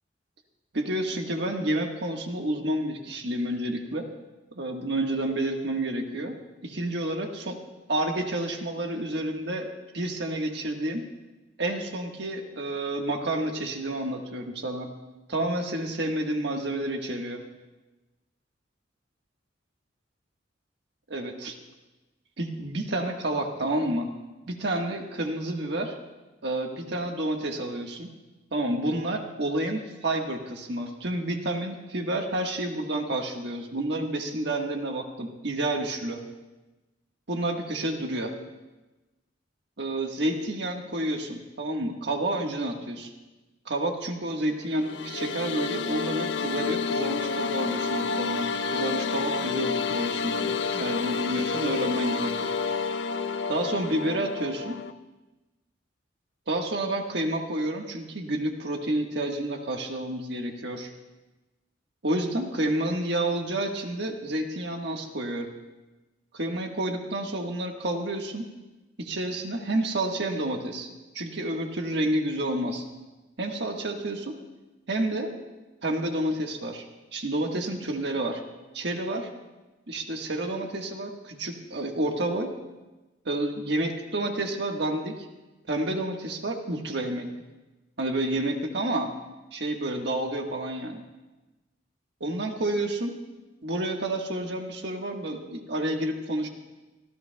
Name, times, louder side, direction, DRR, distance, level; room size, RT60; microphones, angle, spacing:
voice 1, 0.7-4.1 4.5-6.4 6.6-7.6 7.9-9.7 9.9-11.1 11.6-14.9 15.3-17.4 21.1-21.5 22.4-24.1 24.5-25.9 26.4-28.1 28.5-36.2 37.3-38.3 39.8-43.1 43.6-52.5 53.5-54.8 56.5-60.9 62.0-65.5 66.3-68.5 69.0-70.9 71.1-72.8 73.4-74.4 74.9-75.3 75.8-76.8 77.1-78.4 78.7-79.3 79.9-82.5 83.2-85.2 85.7-87.3 88.0-89.1 89.5-91.0 92.2-93.1 93.6-96.5, right 1 dB, 65° right, 2 dB, 1.5 m, -29 dB
sound 1, 44.7-54.9, left 5 dB, 70° left, 0.5 m, -29 dB
24.5 x 14.0 x 2.3 m, 1.1 s
head